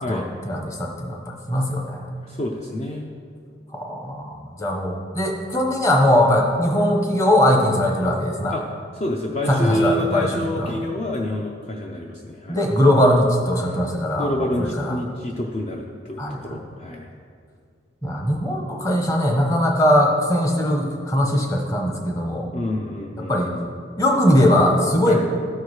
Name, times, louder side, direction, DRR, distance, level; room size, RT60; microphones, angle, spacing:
voice 1, 0.1-2.1 3.7-8.6 9.5-10.3 10.6-10.7 12.5-15.0 16.2-16.4 18.0-22.5 23.3-23.5 24.0-25.2, left 1 dB, 20° left, 1 dB, 1.0 m, -20 dB
voice 2, 2.2-3.1 8.5-8.6 8.9-12.6 14.2-17.1 22.5-23.6 25.1-25.2, left 1 dB, 35° left, 0 dB, 0.5 m, -27 dB
12.5 x 4.7 x 4.8 m, 2.2 s
head